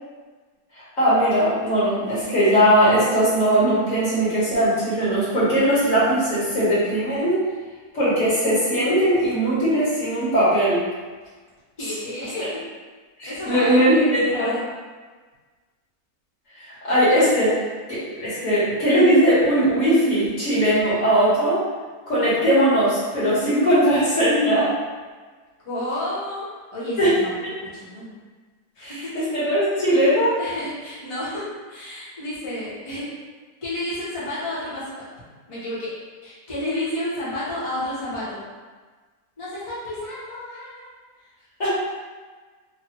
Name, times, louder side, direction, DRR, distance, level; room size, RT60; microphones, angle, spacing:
voice 1, 1.0-7.4 7.9-10.8 12.4-12.5 13.2-14.5 16.8-17.6 17.9-21.6 22.1-24.7 27.0-27.1 27.4-27.5 28.8-30.4 41.6-41.7, equal, 65° left, -9 dB, 1.5 m, -19 dB
voice 2, 11.8-12.6 13.3-14.6 25.6-27.3 27.7-28.2 28.8-29.1 30.4-33.0 33.6-34.8 35.5-35.9 36.2-38.4 39.4-40.9, left 1 dB, 25° left, -10 dB, 0.8 m, -31 dB
3.2 x 2.2 x 2.9 m, 1.4 s
omnidirectional pair, 1.5 m